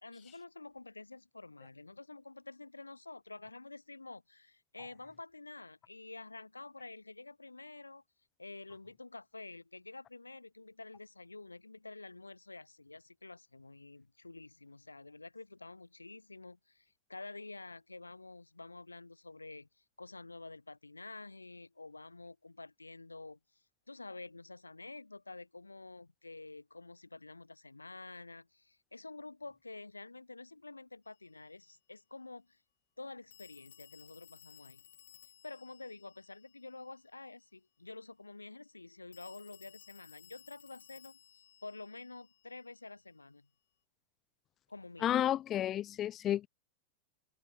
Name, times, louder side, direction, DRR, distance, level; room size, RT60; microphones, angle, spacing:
voice 1, 0.0-8.0 8.4-32.6 33.0-34.8 35.4-41.2 41.6-43.5 44.7-45.3, left 3 dB, 80° left, 1.1 m, -49 dB
Telephone, 31.1-31.2 33.3-37.0 39.1-42.8, left 11 dB, 60° left, 4.2 m, -60 dB
voice 2, 45.0-46.5, left 11 dB, 30° left, 0.5 m, -31 dB
open air
figure-of-eight pair, 90°, 0 cm